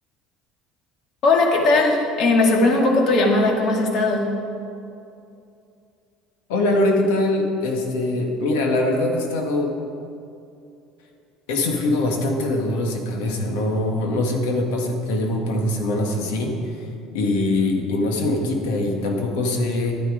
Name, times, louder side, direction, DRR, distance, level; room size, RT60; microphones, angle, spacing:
voice 1, 1.2-4.3, left 2 dB, 55° left, 1 dB, 2.1 m, -18 dB
voice 2, 6.5-9.7 11.5-16.6 17.1-20.0, left 2 dB, 85° left, 2 dB, 1.8 m, -22 dB
11.5 x 9.9 x 5.0 m, 2.5 s
supercardioid pair, 100°, 0 cm